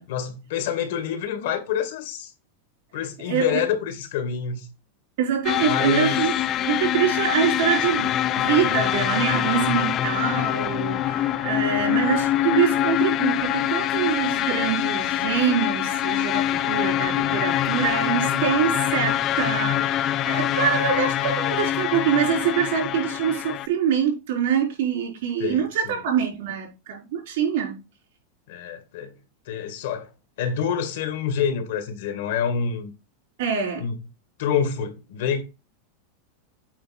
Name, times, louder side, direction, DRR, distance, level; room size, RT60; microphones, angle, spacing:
voice 1, 0.1-2.3 2.9-4.7 5.6-6.2 11.8-12.1 25.4-26.0 28.5-29.1 29.5-30.1 30.4-32.9 33.8-34.0 34.4-35.4, left 7 dB, 75° left, 2.1 m, -27 dB
voice 2, 2.9-3.6 5.2-6.3 6.6-27.8 33.4-33.8, right 8 dB, 70° right, 4.7 m, -25 dB
sound 1, 5.4-23.7, left 12 dB, 35° left, 0.5 m, -24 dB
8.7 x 3.2 x 6.4 m
supercardioid pair, 125°, 0 cm